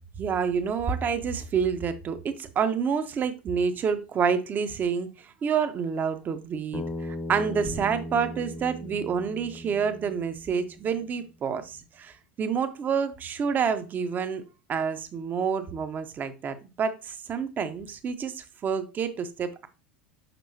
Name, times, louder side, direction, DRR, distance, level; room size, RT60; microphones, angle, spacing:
voice 1, 0.2-14.4 14.7-19.7, right 6 dB, 30° right, 0.9 m, -28 dB
Bass guitar, 6.7-11.0, left 1 dB, 20° left, 1.0 m, -38 dB
6.9 x 5.3 x 2.8 m
hypercardioid pair, 85°, 6 cm